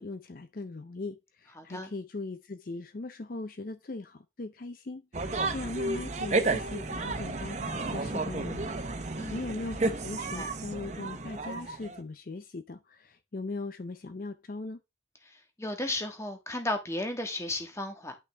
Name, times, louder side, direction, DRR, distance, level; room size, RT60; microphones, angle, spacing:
voice 1, 0.0-14.8, left 3 dB, 50° left, 0.5 m, -39 dB
voice 2, 1.6-1.9 9.1-9.4 10.3-10.5 15.6-18.1, left 1 dB, 15° left, 1.4 m, -34 dB
sound 1, 5.1-12.0, right 3 dB, 40° right, 0.9 m, -32 dB
10.5 x 5.6 x 3.4 m
head